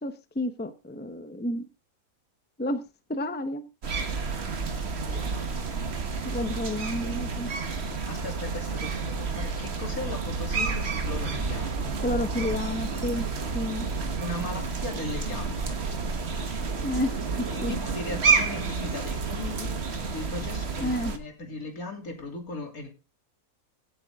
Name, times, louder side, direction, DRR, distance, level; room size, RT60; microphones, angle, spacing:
voice 1, 0.0-1.7 2.6-2.8 3.1-3.6 6.2-7.5 12.0-13.3 13.5-13.9 16.8-17.2 17.6-17.7 20.8-21.1, left 1 dB, 10° left, 10 dB, 0.8 m, -30 dB
sound 1, 3.8-21.2, right 4 dB, 45° right, 1.4 m, -30 dB
voice 2, 5.0-5.7 8.0-11.9 14.2-16.2 17.4-19.8 20.1-22.9, left 3 dB, 70° left, 4 dB, 3.4 m, -38 dB
16.5 x 8.2 x 3.6 m, 0.30 s
omnidirectional pair, 1.6 m